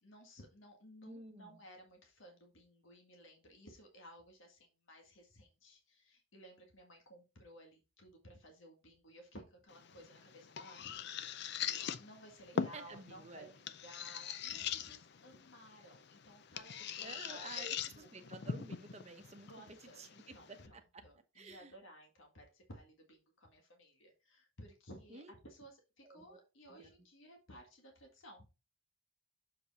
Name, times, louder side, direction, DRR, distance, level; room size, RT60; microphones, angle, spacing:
voice 1, 0.0-11.3 11.9-17.6 17.9-18.1 19.5-28.5, equal, 70° left, 2 dB, 1.8 m, -57 dB
voice 2, 1.0-1.6 12.5-13.5 17.0-19.5 19.8-20.1 20.5-21.0 21.3-21.7 25.1-25.3 26.0-26.4 26.7-26.9, right 3 dB, 30° right, 6 dB, 0.9 m, -52 dB
sound 1, 9.7-20.7, left 7 dB, 50° left, 0.5 m, -43 dB
6.9 x 4.9 x 4.0 m, 0.28 s
head